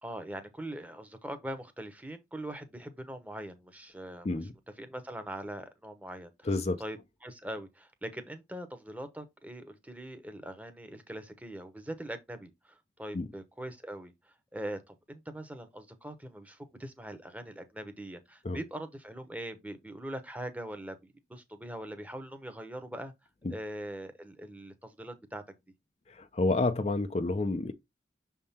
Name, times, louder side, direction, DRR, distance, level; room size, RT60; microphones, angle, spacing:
voice 1, 0.0-4.3 4.8-23.1 23.5-25.4, right 1 dB, 10° right, 0.9 m, -42 dB
voice 2, 6.5-6.8 13.1-13.3 18.4-18.6 23.4-23.5 26.1-27.7, left 2 dB, 35° left, 0.5 m, -29 dB
6.5 x 3.6 x 4.2 m
head